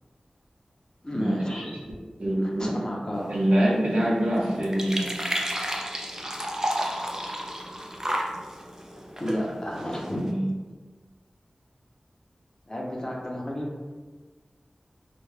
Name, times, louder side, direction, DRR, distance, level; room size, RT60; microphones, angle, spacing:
voice 1, 1.0-1.9 2.4-3.3 8.9-10.3 12.7-13.9, equal, 30° left, -2 dB, 0.6 m, -32 dB
voice 2, 2.2-2.7 3.3-5.0 10.1-10.5, right 1 dB, 75° right, -7 dB, 0.8 m, -24 dB
sound 1, 3.1-10.3, equal, 25° right, 0.4 m, -33 dB
2.2 x 2.2 x 3.1 m, 1.3 s
wide cardioid pair, 45°, 2 cm